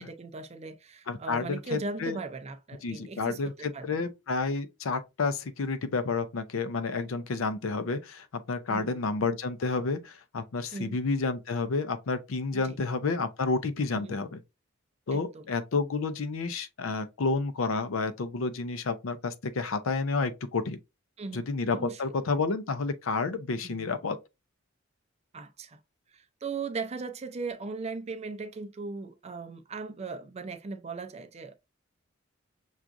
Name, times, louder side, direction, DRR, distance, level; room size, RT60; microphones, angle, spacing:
voice 1, 0.0-4.1 8.7-9.1 10.7-11.0 12.5-12.8 13.9-14.2 15.1-15.5 21.2-22.0 23.6-23.9 25.3-25.8 26.1-31.5, right 4 dB, 30° right, 0.4 m, -38 dB
voice 2, 1.1-2.2 2.8-14.4 15.1-20.8 21.3-24.2, left 4 dB, 85° left, 0.5 m, -30 dB
5.9 x 2.4 x 2.5 m
head